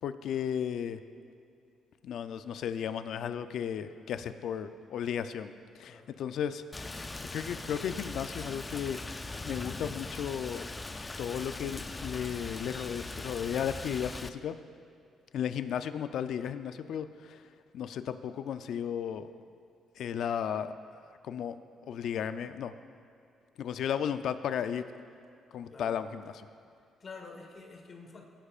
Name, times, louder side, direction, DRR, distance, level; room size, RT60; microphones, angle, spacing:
voice 1, 0.0-1.0 2.0-6.9 7.3-9.0 9.4-10.7 11.2-14.6 15.3-17.4 17.7-19.3 20.0-20.7 21.2-21.6 21.9-22.7 23.6-24.8 25.5-26.5, left 8 dB, 75° left, 10 dB, 0.5 m, -34 dB
Rain, 6.7-14.3, left 2 dB, 20° left, 0.5 m, -40 dB
voice 2, 25.7-26.0 27.0-28.3, left 4 dB, 45° left, 2 dB, 1.4 m, -48 dB
19.5 x 10.0 x 2.5 m, 2.5 s
cardioid pair, 90°, 0 cm